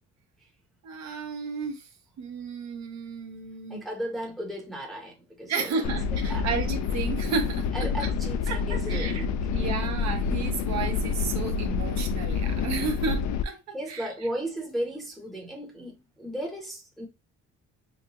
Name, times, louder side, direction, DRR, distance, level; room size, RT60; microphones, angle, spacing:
voice 1, 0.8-1.9 2.2-3.9 5.4-8.1 8.5-9.2 9.5-14.1, right 5 dB, 65° right, 0.8 m, -33 dB
voice 2, 3.7-5.8 6.1-6.5 7.7-9.7 13.7-17.1, equal, ahead, 0.7 m, -35 dB
sound 1, 5.8-13.4, left 5 dB, 70° left, 0.5 m, -28 dB
4.1 x 2.3 x 2.9 m
cardioid pair, 155°, 29 cm